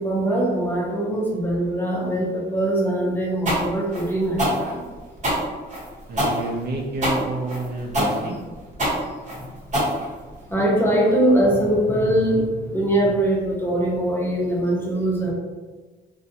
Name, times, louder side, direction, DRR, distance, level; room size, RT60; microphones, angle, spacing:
voice 1, 0.0-4.8 9.3-9.9 10.5-15.3, right 1 dB, 10° left, -3 dB, 0.7 m, -22 dB
sound 1, 3.5-10.5, equal, 40° right, 1.2 m, -24 dB
voice 2, 6.1-8.4, right 2 dB, 55° right, 0 dB, 0.5 m, -29 dB
2.4 x 2.2 x 2.8 m, 1.4 s
cardioid pair, 90°, 20 cm